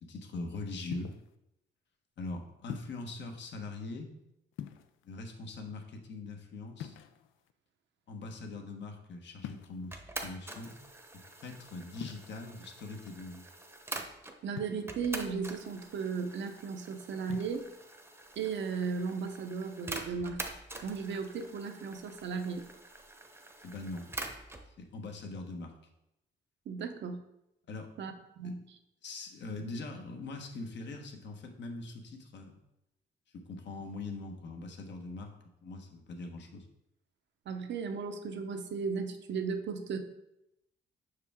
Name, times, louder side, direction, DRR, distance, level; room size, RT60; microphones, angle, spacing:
voice 1, 0.0-1.1 2.2-4.1 5.0-7.0 8.1-10.7 11.3-13.5 23.6-24.1 24.8-25.8 27.7-27.9 28.4-28.5 29.0-32.6 33.3-35.3 35.6-36.7, left 3 dB, 65° left, 4 dB, 1.1 m, -42 dB
sound 1, 0.9-1.3 2.7-3.1 4.5-5.2 6.8-7.5 9.4-9.9 12.0-12.3 14.6-15.1 17.2-17.6, left 10 dB, 85° left, 0.5 m, -44 dB
sound 2, 9.9-14.4 14.9-24.7, right 2 dB, 10° right, 0.8 m, -45 dB
voice 2, 14.4-17.6 18.4-20.4 20.8-22.7 26.7-27.2 28.0-28.6 37.5-40.0, right 5 dB, 65° right, 7 dB, 0.8 m, -36 dB
5.8 x 4.8 x 3.5 m, 0.86 s
cardioid pair, 90°, 20 cm